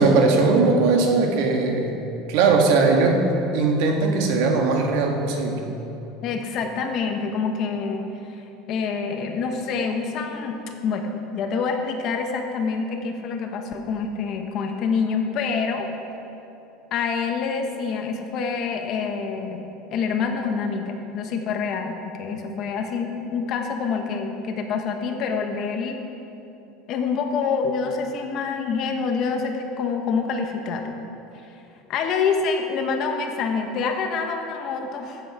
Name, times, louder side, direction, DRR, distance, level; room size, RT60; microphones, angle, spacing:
voice 1, 0.0-1.9 2.3-3.2 3.5-5.6, right 3 dB, 65° right, 2 dB, 1.6 m, -19 dB
voice 2, 6.2-8.0 8.3-15.9 16.9-26.0 26.9-31.0 31.9-35.2, left 5 dB, 40° left, 4 dB, 1.0 m, -26 dB
14.5 x 8.0 x 4.8 m, 2.9 s
cardioid pair, 165°, 0 cm